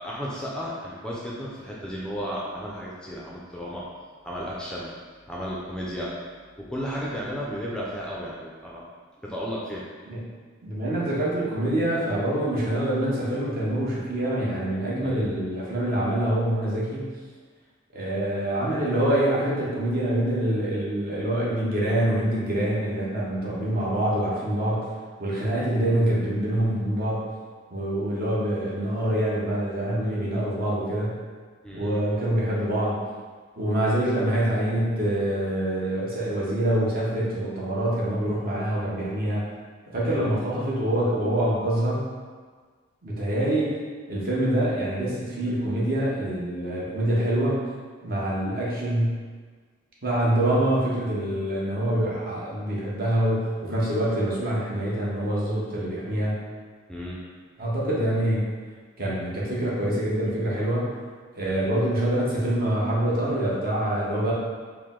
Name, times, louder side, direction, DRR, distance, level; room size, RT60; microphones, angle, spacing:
voice 1, 0.0-3.9 4.2-4.9 5.3-6.1 6.6-8.8 9.2-9.8 15.0-15.4 31.6-32.0 40.0-40.3 56.9-57.2 61.4-61.7, equal, 5° left, -6 dB, 0.4 m, -34 dB
voice 2, 10.6-17.1 17.9-24.9 25.2-27.2 27.7-31.2 31.7-33.0 33.6-39.4 39.9-42.0 43.0-43.7 44.1-47.6 48.0-49.2 50.0-56.4 57.6-58.4 59.0-60.9 61.3-64.3, right 1 dB, 50° right, -6 dB, 0.9 m, -25 dB
4.6 x 2.1 x 3.6 m, 1.5 s
head